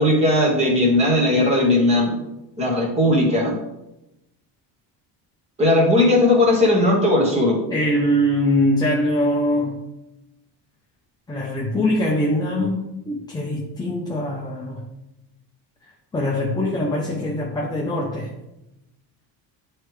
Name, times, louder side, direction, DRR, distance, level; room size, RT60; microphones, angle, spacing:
voice 1, 0.0-2.2 2.6-3.6 5.6-7.7, left 1 dB, 15° right, -2 dB, 1.2 m, -18 dB
voice 2, 7.7-9.8 11.3-14.8 16.1-18.3, left 1 dB, 10° left, -2 dB, 0.4 m, -22 dB
9.3 x 3.2 x 3.1 m, 0.92 s
cardioid pair, 175°, 43 cm